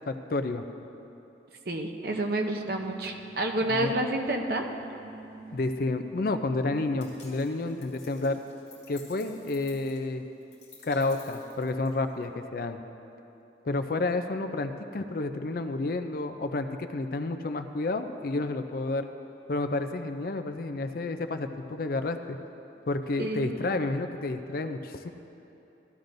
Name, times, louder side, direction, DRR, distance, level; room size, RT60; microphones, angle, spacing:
voice 1, 0.1-0.6 3.7-4.0 5.5-8.4 8.9-10.2 10.8-12.8 13.6-19.1 19.5-22.4 22.9-25.1, left 2 dB, 50° left, 8 dB, 0.4 m, -30 dB
voice 2, 1.7-4.6 23.2-23.6, right 1 dB, 55° right, 3 dB, 0.7 m, -29 dB
sound 1, 2.6-7.4, right 3 dB, 30° right, 2.5 m, -49 dB
sound 2, 7.0-12.2, left 4 dB, 35° left, 2.6 m, -53 dB
14.0 x 12.0 x 2.6 m, 2.9 s
head